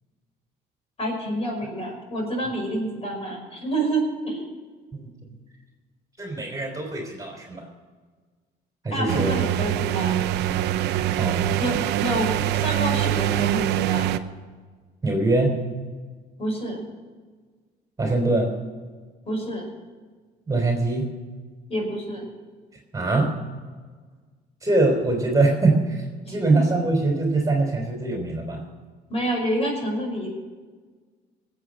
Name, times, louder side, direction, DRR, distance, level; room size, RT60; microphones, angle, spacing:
voice 1, 1.0-4.5 8.9-10.2 11.6-14.2 16.4-16.8 19.3-19.7 21.7-22.3 26.3-26.6 29.1-30.3, right 1 dB, 35° left, 1 dB, 5.5 m, -28 dB
voice 2, 6.2-7.7 8.8-9.3 11.2-11.6 15.0-15.6 18.0-18.5 20.5-21.1 22.9-23.3 24.6-28.6, right 2 dB, 20° right, 2 dB, 3.5 m, -23 dB
sound 1, 9.1-14.2, right 12 dB, 85° right, 0.7 m, -24 dB
19.5 x 8.3 x 6.3 m, 1.5 s
cardioid pair, 110°, 17 cm